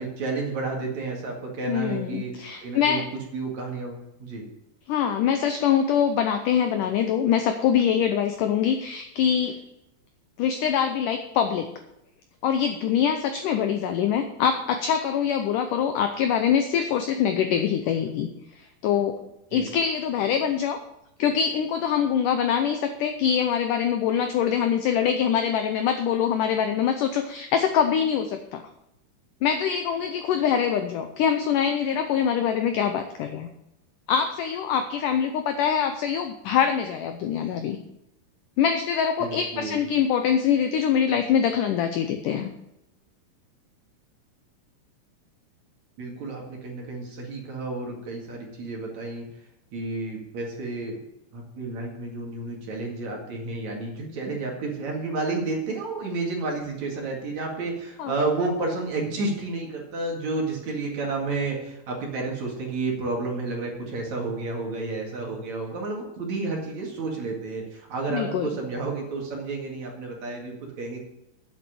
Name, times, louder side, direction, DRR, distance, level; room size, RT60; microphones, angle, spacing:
voice 1, 0.0-2.3 2.6-3.0 3.3-4.4 19.5-19.7 39.2-39.8 46.0-49.3 49.7-51.0 51.3-71.0, right 3 dB, 50° right, 0 dB, 2.9 m, -31 dB
voice 2, 1.7-3.0 4.9-9.6 10.4-11.7 12.4-18.3 18.6-19.2 19.5-20.8 21.2-28.6 29.4-33.5 34.1-37.8 38.6-42.5 58.0-58.1 68.1-68.5, left 8 dB, 85° left, 7 dB, 1.8 m, -24 dB
9.2 x 7.9 x 7.7 m, 0.84 s
omnidirectional pair, 4.7 m